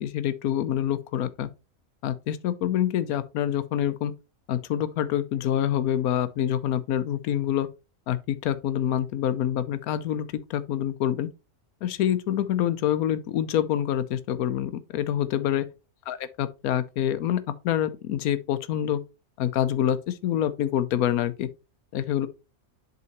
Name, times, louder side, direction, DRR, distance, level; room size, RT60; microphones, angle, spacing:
voice 1, 0.0-1.5 2.0-4.1 4.5-7.7 8.1-11.3 11.8-15.7 16.1-19.0 19.4-21.5 21.9-22.3, left 10 dB, 80° left, 1.2 m, -26 dB
7.8 x 5.4 x 3.0 m
omnidirectional pair, 1.5 m